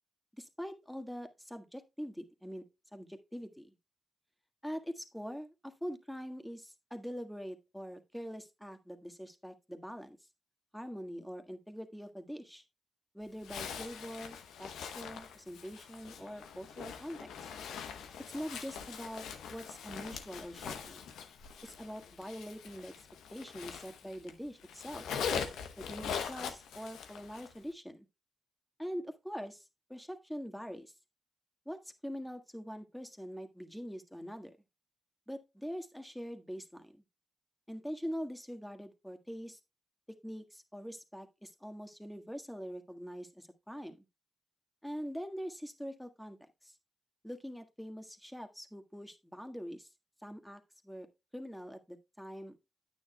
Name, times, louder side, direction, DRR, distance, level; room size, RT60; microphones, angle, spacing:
voice 1, 0.4-2.6 2.9-3.7 4.6-10.2 10.7-12.6 13.1-17.5 18.3-21.0 21.6-22.9 23.3-25.1 25.8-28.1 28.8-30.9 31.6-34.6 35.3-37.0 37.7-39.6 40.1-44.0 44.8-46.7 47.2-49.9 50.2-51.1 51.3-52.6, equal, 5° left, 1.6 m, -44 dB
Zipper (clothing), 13.4-24.3 24.6-27.6, left 7 dB, 80° left, 0.9 m, -42 dB
9.4 x 9.2 x 2.2 m
hypercardioid pair, 40°, 0 cm